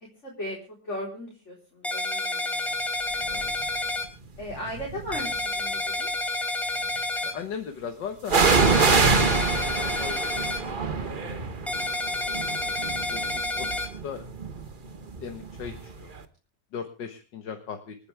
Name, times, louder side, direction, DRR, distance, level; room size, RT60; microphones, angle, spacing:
voice 1, 0.2-0.6 0.8-2.8 4.4-6.1 11.2-11.6 12.7-12.9, left 1 dB, 40° left, -2 dB, 4.5 m, -38 dB
sound 1, 1.8-4.0 5.1-7.3 8.4-10.6 11.7-13.9, left 2 dB, ahead, 4.1 m, -29 dB
voice 2, 3.2-3.6 7.2-9.3 9.7-10.6 11.0-11.7 13.1-14.3 15.2-16.1 16.7-18.0, left 7 dB, 75° left, 5 dB, 2.1 m, -38 dB
sound 2, 3.3-3.7 4.4-5.4 8.3-15.9 16.2-16.3, right 4 dB, 30° right, 1.2 m, -26 dB
28.0 x 9.6 x 3.5 m, 0.34 s
omnidirectional pair, 1.9 m